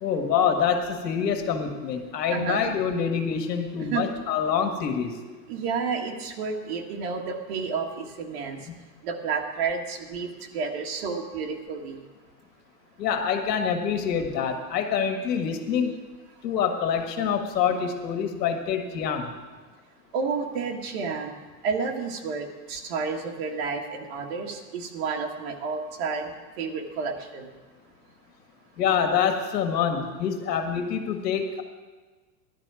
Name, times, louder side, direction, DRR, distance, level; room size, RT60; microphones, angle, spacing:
voice 1, 0.0-5.1 8.7-8.8 13.0-15.9 16.4-19.3 28.8-31.6, left 7 dB, 90° left, 5 dB, 2.1 m, -26 dB
voice 2, 2.3-2.7 3.9-4.1 5.5-8.6 9.0-12.0 20.1-21.3 21.6-26.3 26.6-27.5, right 5 dB, 40° right, 1 dB, 1.7 m, -30 dB
16.0 x 12.0 x 4.9 m, 1.3 s
supercardioid pair, 180°, 47 cm